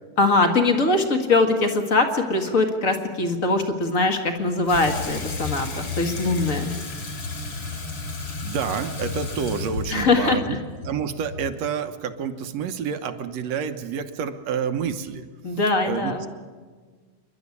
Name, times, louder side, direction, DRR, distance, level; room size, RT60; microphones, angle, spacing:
voice 1, 0.2-6.7 9.9-10.6 15.4-16.3, left 3 dB, 30° left, 5 dB, 1.6 m, -22 dB
Water tap faucet / Sink (filling or washing), 4.6-11.7, left 3 dB, 50° left, 4.9 m, -32 dB
voice 2, 8.4-10.6 10.8-15.2 15.8-16.2, right 7 dB, 65° right, 8 dB, 2.1 m, -28 dB
28.5 x 12.0 x 9.8 m, 1.5 s
omnidirectional pair, 3.6 m